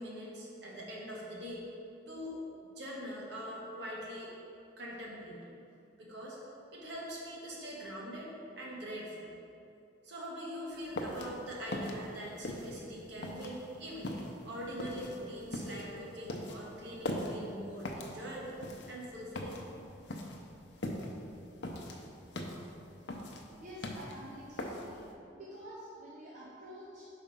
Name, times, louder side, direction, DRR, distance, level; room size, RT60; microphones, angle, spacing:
voice 1, 0.0-1.6 2.1-2.4 2.8-4.3 4.8-5.4 6.0-6.4 6.7-9.3 10.0-18.6 18.9-19.6, equal, 65° right, -4 dB, 1.3 m, -43 dB
sound 1, 10.7-25.1, left 1 dB, 65° left, 0.6 m, -41 dB
voice 2, 23.6-25.1 25.3-27.1, equal, 45° right, -6 dB, 0.8 m, -48 dB
4.8 x 4.4 x 5.3 m, 2.7 s
head